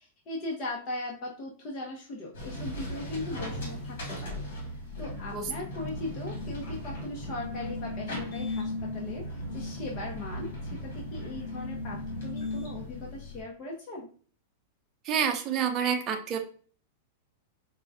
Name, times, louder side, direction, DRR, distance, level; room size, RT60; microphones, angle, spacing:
voice 1, 0.0-14.1, left 2 dB, 40° left, -2 dB, 1.0 m, -39 dB
sound 1, 2.3-13.4, left 1 dB, 75° left, 1.5 m, -36 dB
voice 2, 15.0-16.4, right 7 dB, 35° right, 3 dB, 0.6 m, -28 dB
4.7 x 2.3 x 2.6 m, 0.43 s
hypercardioid pair, 130°, 0 cm